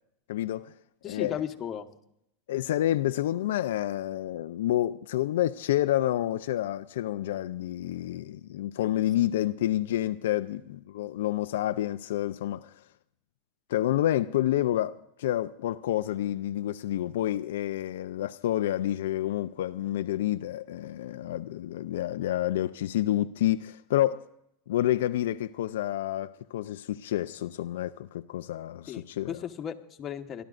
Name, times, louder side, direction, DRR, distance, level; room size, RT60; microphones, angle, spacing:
voice 1, 0.3-0.7 1.0-1.4 2.5-12.7 13.7-24.2 24.7-29.4, left 13 dB, 85° left, 0.4 m, -29 dB
voice 2, 1.0-1.9 28.9-30.4, left 9 dB, 30° left, 1.2 m, -35 dB
29.5 x 12.0 x 2.5 m
supercardioid pair, 135°, 0 cm